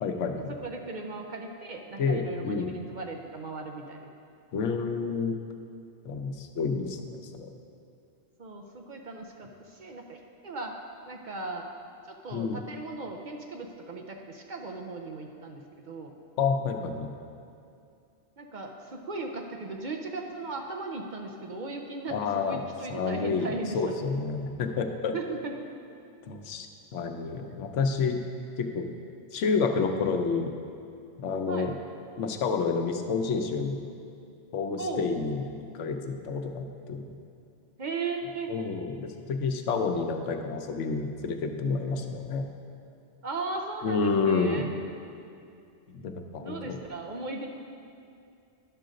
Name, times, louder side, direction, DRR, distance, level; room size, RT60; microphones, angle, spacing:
voice 1, 0.0-0.5 2.0-2.7 4.5-5.3 6.0-7.5 12.3-12.6 16.4-17.1 22.1-22.6 22.9-25.1 26.2-26.7 26.9-28.2 28.6-28.9 29.3-30.5 31.2-31.8 32.2-33.8 34.5-35.5 35.7-37.2 38.5-42.5 43.8-44.7 45.9-46.8, left 4 dB, 90° left, 5 dB, 1.0 m, -29 dB
voice 2, 0.6-4.1 8.4-11.7 12.1-16.1 18.4-23.8 25.1-25.5 31.5-31.7 34.8-35.1 37.8-38.5 43.2-44.7 46.4-47.5, right 3 dB, 50° right, 2 dB, 0.6 m, -37 dB
11.0 x 3.8 x 6.3 m, 2.5 s
omnidirectional pair, 1.2 m